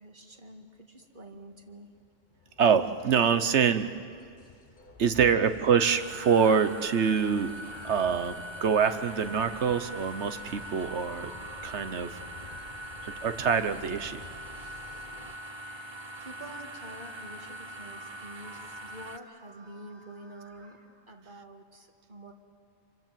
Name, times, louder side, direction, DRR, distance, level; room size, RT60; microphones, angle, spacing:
voice 1, 0.0-1.9 15.0-15.4 16.2-22.3, right 1 dB, 45° right, 3 dB, 2.2 m, -48 dB
sound 1, 1.4-15.4, left 4 dB, 45° left, 1.3 m, -51 dB
voice 2, 2.6-3.9 5.0-7.6 7.8-11.3 11.6-12.2 13.0-14.2, right 6 dB, 85° right, 10 dB, 1.3 m, -25 dB
sound 2, 5.8-19.2, right 1 dB, 30° right, 0.6 m, -42 dB
sound 3, 8.6-20.7, right 1 dB, 90° left, 6.4 m, -55 dB
28.5 x 24.5 x 7.6 m, 2.2 s
omnidirectional pair, 1.1 m